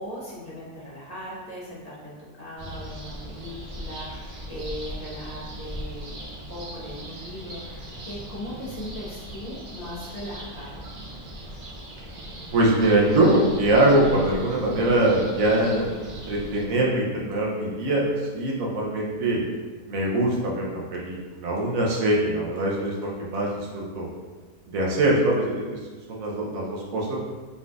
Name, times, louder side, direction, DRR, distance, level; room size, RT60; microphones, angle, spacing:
voice 1, 0.0-10.8, equal, 30° left, -8 dB, 1.0 m, -38 dB
sound 1, 2.6-16.6, right 1 dB, 50° right, 0.6 m, -39 dB
voice 2, 12.5-19.4 19.9-24.1 24.7-25.8 26.1-27.2, right 1 dB, 65° right, -3 dB, 1.1 m, -23 dB
4.1 x 3.9 x 2.4 m, 1.4 s
omnidirectional pair, 1.6 m